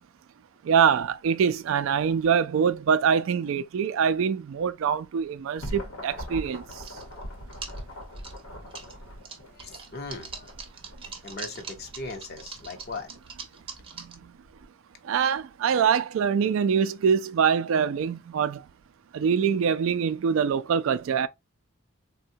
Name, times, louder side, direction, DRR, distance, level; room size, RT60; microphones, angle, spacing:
voice 1, 0.6-6.6 15.0-18.6 19.1-21.3, right 7 dB, 70° right, 0.3 m, -24 dB
sound 1, 5.2-14.7, equal, 85° left, 0.9 m, -42 dB
sound 2, 6.5-7.2 7.5-8.9 9.2-14.1, right 5 dB, 25° right, 0.6 m, -42 dB
voice 2, 9.5-10.5 11.2-13.1, left 3 dB, 50° left, 0.8 m, -38 dB
3.5 x 2.2 x 2.6 m
head